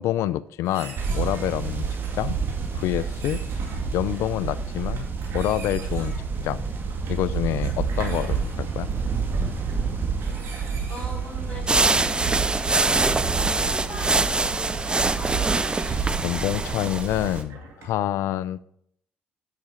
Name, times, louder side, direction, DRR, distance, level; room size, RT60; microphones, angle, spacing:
voice 1, 0.0-1.8 2.1-2.4 2.7-3.4 3.9-5.1 5.3-6.1 6.4-6.7 7.1-8.9 16.2-18.6, left 13 dB, 75° left, 18 dB, 0.4 m, -27 dB
sound 1, 0.6-18.1, right 5 dB, 70° right, 2.4 m, -43 dB
sound 2, 1.0-17.4, right 5 dB, 45° right, 1.8 m, -29 dB
voice 2, 10.9-15.6, left 1 dB, 25° left, -6 dB, 3.8 m, -40 dB
sound 3, 11.7-17.4, right 3 dB, 20° right, 0.4 m, -24 dB
8.9 x 5.8 x 4.2 m, 0.70 s
supercardioid pair, 65°, 5 cm